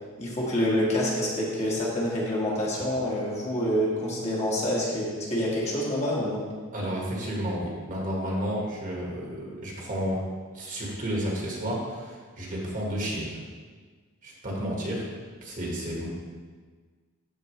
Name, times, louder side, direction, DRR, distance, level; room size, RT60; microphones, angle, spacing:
voice 1, 0.2-6.4, equal, 30° left, -5 dB, 1.7 m, -27 dB
voice 2, 6.7-10.2 10.5-13.4 14.2-15.0 15.4-16.1, equal, 40° right, -3 dB, 1.7 m, -31 dB
13.0 x 4.4 x 3.2 m, 1.5 s
head